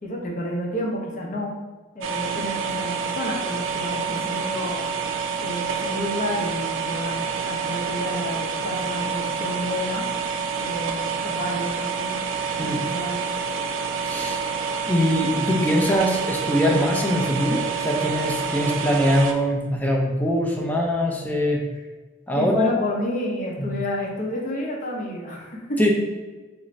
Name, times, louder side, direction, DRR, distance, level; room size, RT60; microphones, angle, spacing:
voice 1, 0.0-1.5 1.9-4.8 5.4-10.1 10.6-12.2 12.6-13.3 22.4-25.8, left 1 dB, 45° left, -2 dB, 0.7 m, -30 dB
sound 1, 2.0-19.3, right 6 dB, 85° right, 0.3 m, -28 dB
voice 2, 14.0-14.4 14.9-21.6 22.3-22.7 23.6-23.7 25.8-25.9, equal, 10° left, 0 dB, 0.4 m, -22 dB
3.0 x 2.5 x 3.2 m, 1.3 s
head